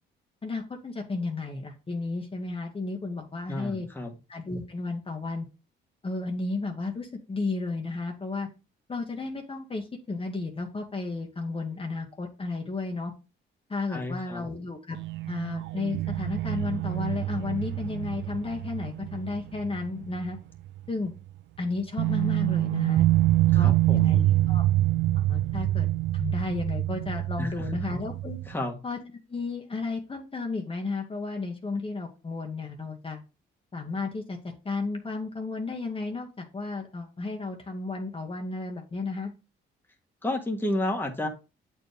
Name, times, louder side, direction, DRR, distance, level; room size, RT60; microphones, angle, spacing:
voice 1, 0.4-3.9 4.3-5.5 6.0-8.5 8.9-13.1 13.7-15.0 15.3-20.4 20.9-21.1 21.6-23.1 23.5-24.6 25.1-25.9 26.1-28.4 28.8-29.0 29.3-33.2 33.7-34.4 34.6-39.3, left 3 dB, 30° left, 1 dB, 1.4 m, -33 dB
voice 2, 3.5-4.1 13.9-14.5 23.5-24.1 27.4-27.7 28.5-28.8 40.2-41.3, left 1 dB, 10° left, 1 dB, 1.6 m, -31 dB
sound 1, 14.9-20.4 20.7-20.8 22.0-28.5, right 16 dB, 70° right, 0.4 m, -26 dB
7.8 x 4.6 x 3.4 m, 0.29 s
cardioid pair, 90°, 20 cm